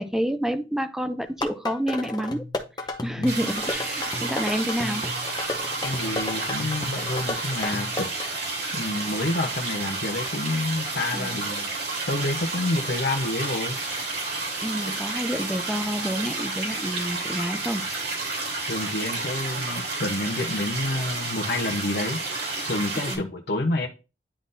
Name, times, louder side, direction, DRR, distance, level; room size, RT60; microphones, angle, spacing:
voice 1, 0.0-2.4 3.0-5.1 11.1-11.4 14.6-17.8 23.0-23.2, equal, 5° right, 0.4 m, -28 dB
sound 1, 1.3-8.3, left 2 dB, 25° left, 0.7 m, -33 dB
sound 2, 3.2-23.2, right 3 dB, 60° right, 2.5 m, -31 dB
voice 2, 5.8-8.1 8.7-11.7 12.1-13.8 14.9-15.0 18.6-22.2 22.6-23.9, left 2 dB, 60° left, 0.9 m, -28 dB
10.0 x 3.8 x 2.6 m
head